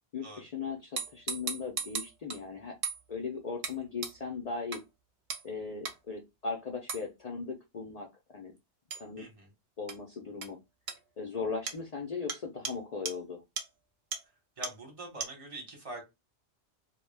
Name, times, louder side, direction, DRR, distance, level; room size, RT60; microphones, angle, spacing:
voice 1, 0.1-2.8 3.1-4.8 5.4-8.1 8.3-8.5 8.9-9.3 9.8-10.6 11.2-13.4, left 5 dB, 65° left, 1 dB, 0.4 m, -38 dB
sound 1, 1.0-2.4 2.8-3.0 3.6-3.8 4.0-4.1 4.7-4.8 5.3-5.5 5.9-6.0 6.9-7.0 8.9-9.0 9.9-10.0 10.4-10.5 10.9-11.0 11.7-11.8 12.3-12.4 12.7-12.8 13.1-13.2 13.6-13.7 14.1-14.2 14.6-14.7 15.2-15.3, right 6 dB, 65° right, 0.8 m, -36 dB
voice 2, 9.2-9.5 14.6-16.0, right 1 dB, 35° right, 1 dB, 0.8 m, -44 dB
2.1 x 2.1 x 3.2 m, 0.22 s
omnidirectional pair, 1.2 m